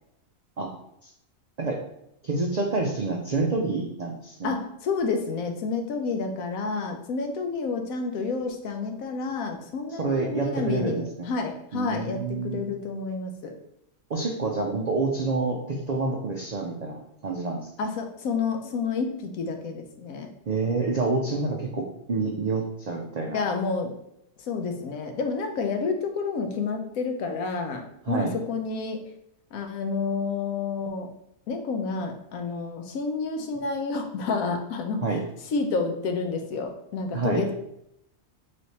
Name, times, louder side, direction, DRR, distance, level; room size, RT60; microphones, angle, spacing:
voice 1, 2.2-4.5 9.9-11.3 11.7-12.7 14.1-17.7 20.5-23.4 28.1-28.3 35.0-35.2 37.1-37.4, right 3 dB, 85° right, 0 dB, 0.3 m, -28 dB
voice 2, 4.4-13.5 17.8-20.3 23.3-24.0 24.5-29.0 29.5-31.1 31.5-35.0 35.5-37.5, left 4 dB, 85° left, 4 dB, 1.1 m, -29 dB
3.3 x 3.2 x 4.0 m, 0.78 s
omnidirectional pair, 1.4 m